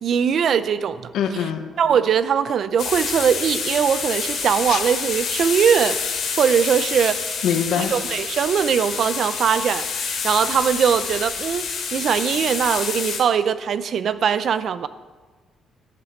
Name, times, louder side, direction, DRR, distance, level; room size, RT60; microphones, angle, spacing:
voice 1, 0.0-1.1 1.8-6.0 6.4-7.2 7.8-11.6 11.9-14.9, right 7 dB, 50° right, 0.5 m, -21 dB
voice 2, 1.1-1.6 4.7-4.8 7.4-7.9, left 8 dB, 90° left, 1.1 m, -23 dB
sound 1, 2.8-13.2, left 5 dB, 65° left, 2.9 m, -27 dB
13.0 x 11.0 x 4.5 m
cardioid pair, 170°, 0 cm